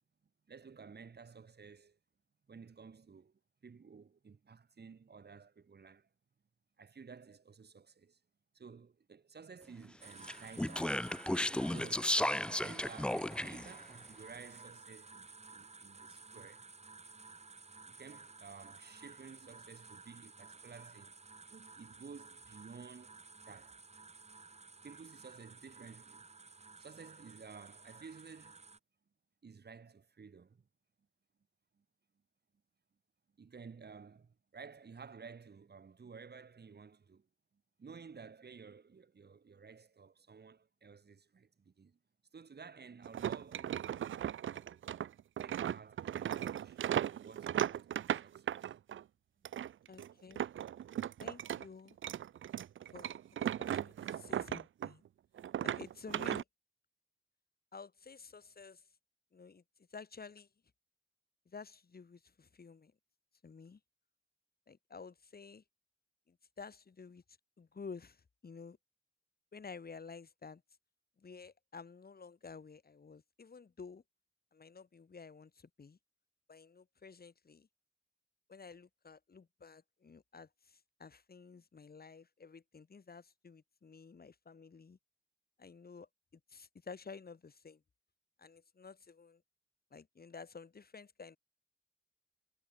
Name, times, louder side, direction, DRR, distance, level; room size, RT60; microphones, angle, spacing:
voice 1, 0.5-2.0 2.5-6.1 6.8-8.2 8.5-11.1 11.4-16.7 17.9-21.2 21.5-23.8 24.8-26.2 26.7-28.8 29.4-30.6 31.8-31.9 33.4-37.3 37.8-42.0 42.3-44.8 45.4-48.7, right 5 dB, 55° right, 8.0 m, -54 dB
sound 1, 10.0-28.8, right 4 dB, 35° right, 1.9 m, -54 dB
Speech, 10.2-13.7, left 1 dB, 5° left, 0.4 m, -34 dB
sound 2, 43.0-49.0 49.4-51.6 51.9-55.1 55.4-56.4, right 10 dB, 80° right, 0.5 m, -37 dB
voice 2, 49.9-50.5 51.2-52.0 52.9-55.0 55.6-56.4 57.7-58.9 59.3-59.6 59.9-60.5 61.5-62.9 63.4-63.8 64.7-65.6 66.3-67.2 67.6-68.8 69.5-70.6 71.2-74.0 74.5-76.0 76.5-77.7 78.5-85.0 85.6-87.8 88.4-89.4 89.9-91.4, left 5 dB, 50° left, 6.2 m, -52 dB
wide cardioid pair, 95°, 20 cm